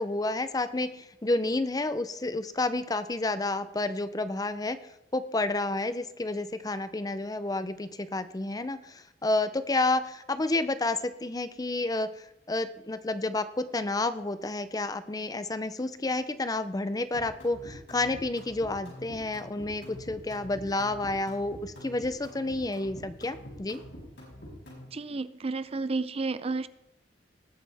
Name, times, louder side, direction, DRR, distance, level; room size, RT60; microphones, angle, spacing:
voice 1, 0.0-4.8 5.1-12.1 12.5-23.8, left 2 dB, 20° left, 12 dB, 0.6 m, -30 dB
sound 1, 17.1-24.9, left 1 dB, 75° left, 5.7 m, -45 dB
voice 2, 24.9-26.7, right 3 dB, 35° right, 15 dB, 0.5 m, -31 dB
19.5 x 8.6 x 3.5 m, 0.87 s
head